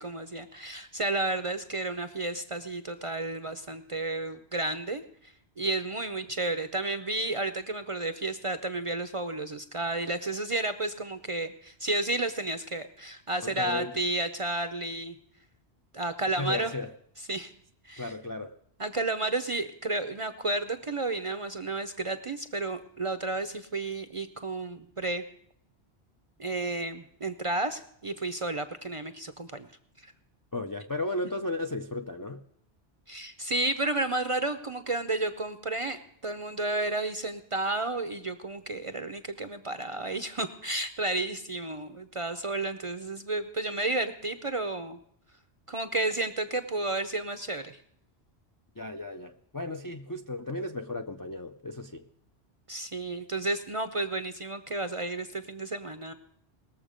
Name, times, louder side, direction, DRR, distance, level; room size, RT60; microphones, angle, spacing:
voice 1, 0.0-15.2 15.9-16.7 17.3-17.5 17.8-18.1 18.8-25.2 26.4-29.7 30.0-30.1 33.1-45.0 45.7-47.7 52.7-56.1, right 2 dB, 40° right, 0.5 m, -32 dB
voice 2, 13.4-14.0 16.3-16.9 18.0-18.5 30.5-32.4 48.8-52.1, left 2 dB, 35° left, 0.3 m, -34 dB
19.5 x 7.1 x 5.0 m
omnidirectional pair, 1.1 m